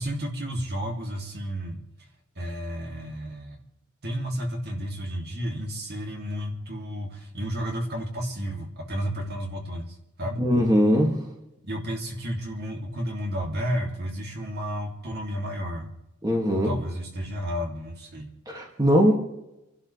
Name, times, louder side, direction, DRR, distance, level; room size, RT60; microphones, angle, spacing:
voice 1, 0.0-1.8 2.3-3.6 4.0-10.5 11.6-15.9 16.6-18.3, equal, 45° right, 1 dB, 3.1 m, -32 dB
voice 2, 10.4-11.3 16.2-16.7 18.5-19.1, equal, 20° right, -1 dB, 2.4 m, -21 dB
29.0 x 12.0 x 3.5 m, 0.88 s
head